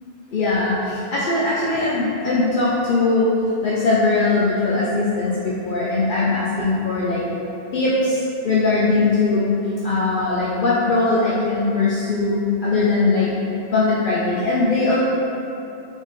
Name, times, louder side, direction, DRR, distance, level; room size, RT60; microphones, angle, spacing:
voice 1, 0.3-3.3 3.6-7.2 7.7-9.5 9.8-13.3 13.7-15.0, left 3 dB, 60° left, -7 dB, 0.7 m, -20 dB
3.6 x 3.5 x 4.0 m, 3.0 s
omnidirectional pair, 1.0 m